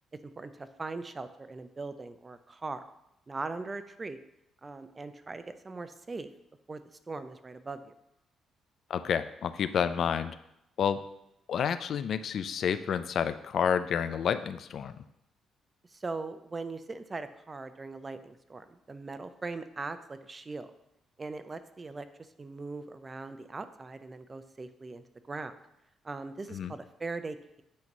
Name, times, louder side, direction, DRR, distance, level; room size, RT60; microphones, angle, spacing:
voice 1, 0.4-2.8 3.3-4.2 4.6-6.3 6.7-6.8 7.1-7.9 15.9-20.7 21.2-22.1 22.4-25.5 26.0-27.6, right 3 dB, 30° right, 11 dB, 0.5 m, -40 dB
voice 2, 8.9-10.4 10.8-11.0 11.5-15.0 26.5-26.7, left 8 dB, 65° left, 12 dB, 0.4 m, -29 dB
8.4 x 3.0 x 5.3 m, 0.82 s
cardioid pair, 90°, 0 cm